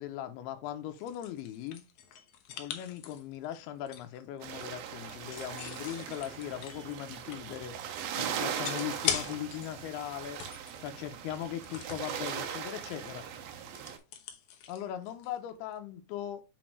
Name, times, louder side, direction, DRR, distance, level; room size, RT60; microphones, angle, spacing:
voice 1, 0.0-1.8 2.6-7.8 8.2-10.4 10.8-13.2 14.7-16.4, left 11 dB, 85° left, 2.7 m, -39 dB
sound 1, 0.7-4.2 5.0-7.7 7.9-8.0 8.5-9.8 10.1-10.8 11.6-12.4 12.8-13.1 13.3-15.5, left 9 dB, 70° left, 1.9 m, -41 dB
sound 2, 4.4-14.0, right 8 dB, 75° right, 2.6 m, -39 dB
7.5 x 4.3 x 3.1 m
omnidirectional pair, 4.4 m